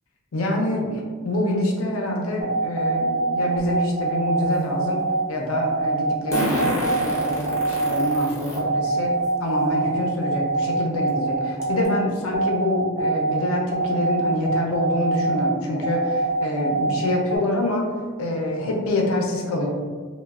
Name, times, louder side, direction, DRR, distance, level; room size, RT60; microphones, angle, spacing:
voice 1, 0.3-5.0 5.3-17.9 18.2-19.7, left 1 dB, 75° left, 0 dB, 0.5 m, -26 dB
sound 1, 2.4-17.4, right 3 dB, 35° right, 0.4 m, -24 dB
Fart, 3.6-3.7 6.3-8.6 9.2-9.3 10.6-10.7 11.1-11.2 11.6-11.9, left 1 dB, 15° left, 0.6 m, -28 dB
3.0 x 2.1 x 2.3 m, 1.5 s
head